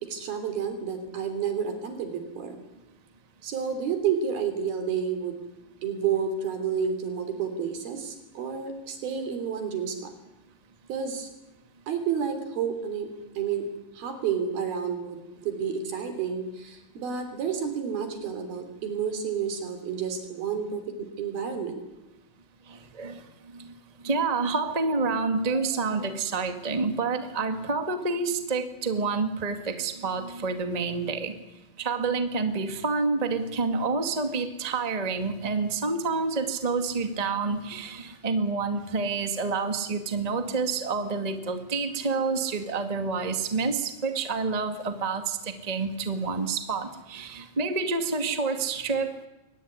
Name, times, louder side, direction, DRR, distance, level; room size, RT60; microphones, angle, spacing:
voice 1, 0.0-2.6 3.4-5.4 5.8-10.1 10.9-11.3 11.9-13.1 13.3-13.7 13.9-21.8, right 7 dB, 85° right, 8 dB, 5.2 m, -30 dB
voice 2, 22.7-23.2 23.5-23.7 24.0-31.3 31.8-49.1, right 4 dB, 15° right, 7 dB, 1.2 m, -28 dB
23.0 x 19.0 x 9.8 m, 1.0 s
omnidirectional pair, 4.2 m